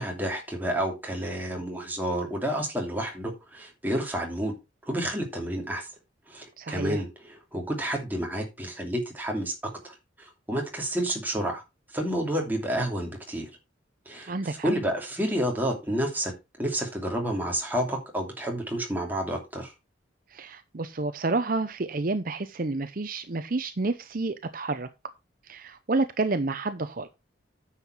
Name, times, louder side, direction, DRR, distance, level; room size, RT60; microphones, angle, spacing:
voice 1, 0.0-4.5 4.9-5.9 6.3-9.5 9.8-11.6 11.9-13.5 14.1-16.3 16.6-19.7, right 1 dB, 10° right, 2.8 m, -30 dB
voice 2, 6.6-7.0 14.3-14.7 20.3-24.9 25.4-27.1, right 3 dB, 45° right, 0.7 m, -29 dB
9.7 x 7.3 x 4.5 m
head